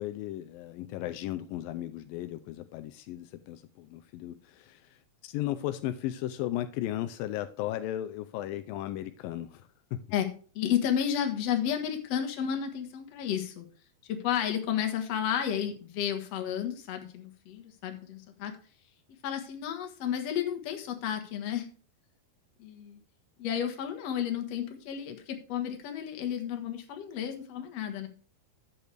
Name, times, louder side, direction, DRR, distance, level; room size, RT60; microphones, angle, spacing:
voice 1, 0.0-10.0, left 13 dB, 90° left, 2.0 m, -36 dB
voice 2, 10.6-13.7 14.1-18.5 19.2-21.7 22.6-23.0 23.4-28.1, left 9 dB, 55° left, 1.9 m, -32 dB
10.5 x 8.4 x 3.4 m
omnidirectional pair, 4.7 m